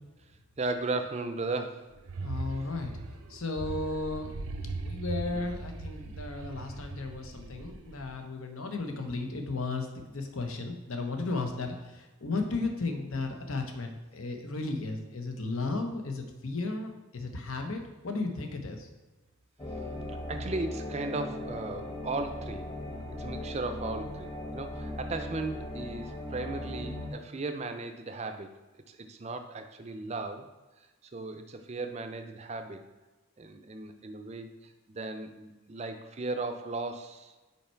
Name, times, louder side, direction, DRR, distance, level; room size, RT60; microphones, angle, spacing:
voice 1, 0.6-1.9 5.3-5.4 11.4-11.5 20.1-22.7 23.2-28.5 28.9-30.5 31.0-32.8 33.4-37.3, right 3 dB, 30° right, 7 dB, 0.4 m, -36 dB
sound 1, 1.9-8.3, right 3 dB, 85° right, 0.5 m, -39 dB
voice 2, 2.2-2.9 3.3-4.3 4.8-18.9, left 3 dB, 75° left, 5 dB, 0.9 m, -34 dB
sound 2, 19.6-27.1, left 1 dB, 20° left, 1.1 m, -38 dB
5.6 x 4.5 x 4.5 m, 1.2 s
head